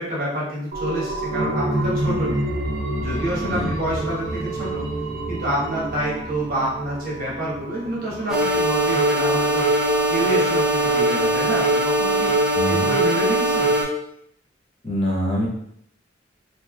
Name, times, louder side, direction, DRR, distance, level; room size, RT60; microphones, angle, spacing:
voice 1, 0.0-2.4 3.0-4.9 5.3-9.6 10.1-12.3 12.7-13.7, right 1 dB, 50° right, -5 dB, 1.2 m, -28 dB
sound 1, 0.7-10.1 10.4-10.5, right 1 dB, 90° right, 0.5 m, -29 dB
voice 2, 3.4-3.7 12.5-12.9 14.8-15.5, left 1 dB, 35° left, -4 dB, 0.7 m, -24 dB
sound 2, 8.3-13.8, right 1 dB, 5° right, 0.7 m, -20 dB
3.2 x 2.7 x 2.3 m, 0.71 s
head